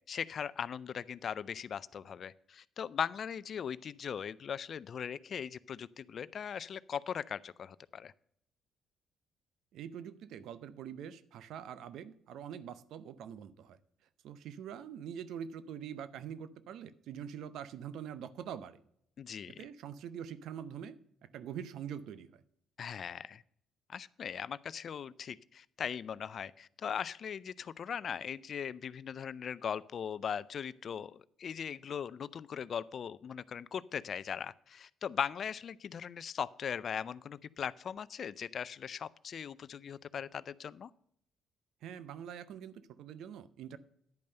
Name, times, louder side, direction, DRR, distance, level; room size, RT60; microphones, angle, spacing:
voice 1, 0.1-8.1 19.2-19.6 22.8-23.4 23.9-40.9, left 7 dB, 55° left, 19 dB, 0.4 m, -39 dB
voice 2, 9.7-13.8 14.2-18.8 19.5-22.4 41.8-43.8, right 8 dB, 70° right, 15 dB, 0.6 m, -44 dB
10.5 x 5.3 x 6.6 m, 0.72 s
hypercardioid pair, 55°, 0 cm